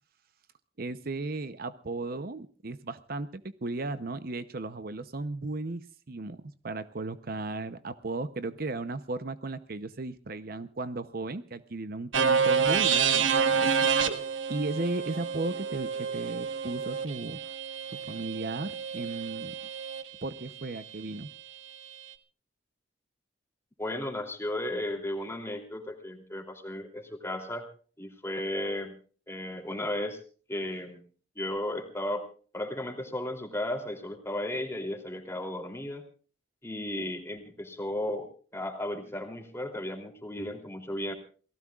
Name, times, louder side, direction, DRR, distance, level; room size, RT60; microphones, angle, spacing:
voice 1, 0.8-17.4 17.9-19.6 20.2-21.3, right 2 dB, 50° right, 12 dB, 0.8 m, -35 dB
sound 1, 12.1-20.0, right 6 dB, 90° right, 1.4 m, -28 dB
voice 2, 23.8-27.7 28.0-28.9 29.3-30.2 30.5-31.0 31.3-32.3 32.5-36.0 36.6-41.1, left 1 dB, 15° left, 3 dB, 3.0 m, -34 dB
28.5 x 18.5 x 2.4 m, 0.42 s
head